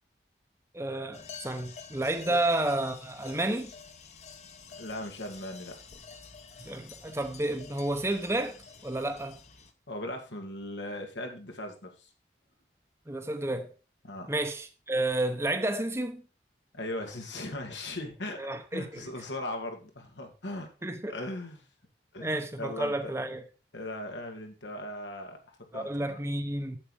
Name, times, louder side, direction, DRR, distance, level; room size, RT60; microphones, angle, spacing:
voice 1, 0.7-3.7 6.6-9.4 13.1-13.7 14.3-16.2 18.4-19.1 20.8-21.1 22.2-23.4 25.7-26.8, right 1 dB, 15° right, 0.8 m, -31 dB
sound 1, 1.1-9.7, left 5 dB, 40° left, 1.0 m, -49 dB
voice 2, 4.8-5.8 9.9-12.1 14.0-14.3 16.7-18.4 18.7-20.7 21.1-21.6 22.1-23.1 23.7-26.2, left 1 dB, 90° left, 2.3 m, -38 dB
8.8 x 7.4 x 4.9 m
head